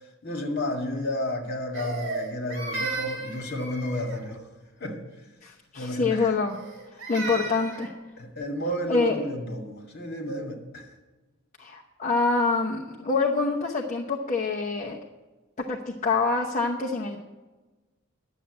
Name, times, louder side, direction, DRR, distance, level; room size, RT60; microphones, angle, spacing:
voice 1, 0.2-4.4 4.8-5.0 5.7-6.3 7.3-7.4 8.2-10.9, left 1 dB, 50° left, 2.1 m, -31 dB
Crying sobbing, 1.7-4.3 6.5-7.9, right 3 dB, 60° right, 2.9 m, -35 dB
voice 2, 5.4-6.6 7.1-7.9 8.9-9.2 11.6-15.0 15.7-17.2, left 4 dB, 35° left, 0.9 m, -26 dB
11.0 x 7.4 x 8.3 m
head